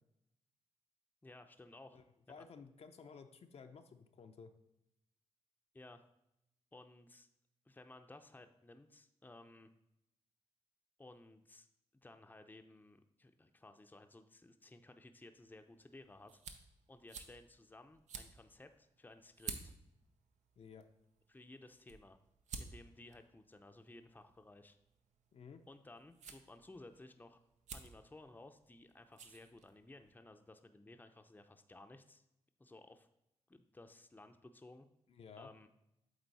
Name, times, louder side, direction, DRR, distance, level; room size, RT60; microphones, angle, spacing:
voice 1, 1.2-2.0 2.4-2.5 5.7-6.0 6.7-7.3 7.7-9.7 11.0-11.7 12.0-16.4 16.9-19.7 21.3-22.2 22.6-24.8 25.7-27.4 27.7-32.2 32.6-33.1 33.5-34.9 35.3-35.7, left 2 dB, 15° left, 7 dB, 0.6 m, -57 dB
voice 2, 2.3-4.5 20.6-20.9 25.3-25.6 35.1-35.5, left 5 dB, 60° left, 6 dB, 0.6 m, -54 dB
sound 1, 15.3-30.1, right 5 dB, 80° right, 0.6 m, -54 dB
8.0 x 3.7 x 4.1 m, 0.83 s
supercardioid pair, 50°, 12 cm